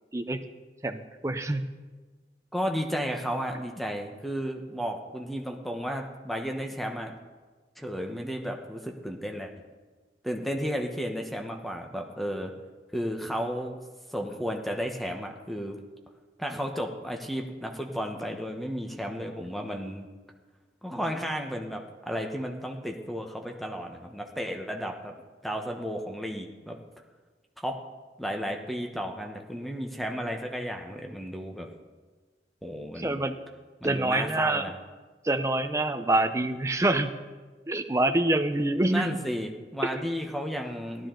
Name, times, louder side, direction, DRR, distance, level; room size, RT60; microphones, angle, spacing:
voice 1, 0.1-0.4 0.8-1.7 33.0-33.4 33.8-34.7 35.2-37.1 37.7-39.1 39.8-39.9, right 2 dB, 15° right, 8 dB, 0.6 m, -26 dB
voice 2, 2.5-7.2 7.8-9.5 10.2-12.5 12.9-13.8 14.1-15.8 16.4-20.1 20.8-25.1 25.4-26.8 27.6-27.8 28.2-31.7 32.6-33.2 33.8-34.7 38.8-41.1, equal, ahead, 2 dB, 1.0 m, -33 dB
16.0 x 12.0 x 3.8 m, 1.3 s
head